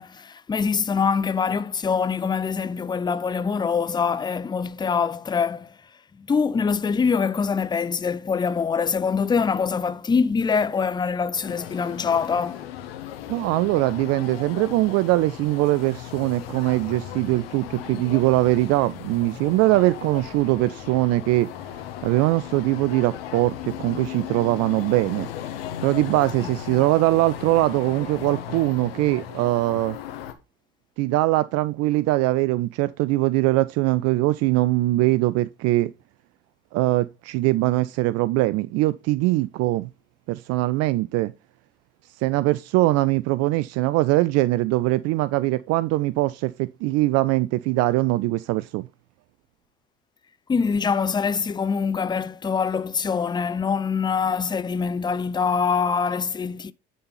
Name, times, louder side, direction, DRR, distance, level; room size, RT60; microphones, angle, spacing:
voice 1, 0.0-5.8 6.2-12.6 26.4-26.5 50.5-56.7, left 5 dB, 15° left, 0.5 m, -24 dB
sound 1, 11.3-30.3, left 10 dB, 75° left, 1.2 m, -37 dB
voice 2, 13.3-21.5 22.0-25.3 25.8-30.0 31.0-35.9 36.7-39.9 40.3-41.3 42.2-48.9, right 18 dB, 55° right, 0.5 m, -22 dB
10.0 x 4.2 x 5.4 m
hypercardioid pair, 60°, 29 cm